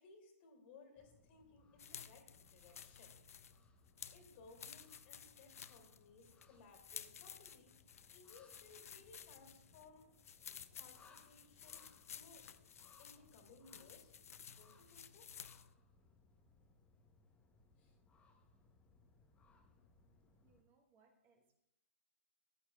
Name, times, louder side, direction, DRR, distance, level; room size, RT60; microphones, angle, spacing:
voice 1, 0.0-3.2 4.1-10.1 10.7-12.5 13.0-14.2 14.5-15.3 17.8-18.0, left 3 dB, 45° left, 4 dB, 2.2 m, -62 dB
sound 1, 1.0-20.6, left 3 dB, 15° left, 0.8 m, -69 dB
sound 2, 1.8-15.7, left 8 dB, 75° left, 0.4 m, -55 dB
voice 2, 20.4-21.5, right 4 dB, 25° right, 3 dB, 1.2 m, -73 dB
14.0 x 8.6 x 2.3 m, 0.83 s
hypercardioid pair, 135°, 8 cm